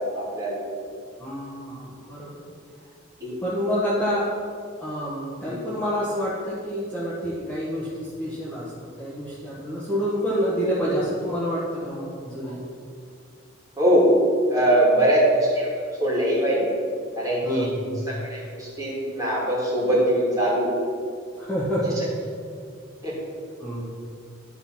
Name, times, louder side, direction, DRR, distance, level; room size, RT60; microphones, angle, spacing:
voice 1, 0.1-0.5 3.2-3.3 5.4-5.6 13.8-14.1 14.5-15.7 16.0-16.7 17.2-17.6 18.3-20.7 23.0-23.1, right 1 dB, 20° right, -6 dB, 2.4 m, -21 dB
voice 2, 1.2-2.3 3.4-4.3 4.8-8.7 9.0-12.6 14.9-15.1 17.4-17.9 21.4-22.0 23.6-23.8, equal, 5° left, -9 dB, 1.2 m, -28 dB
11.0 x 3.9 x 5.8 m, 2.3 s
head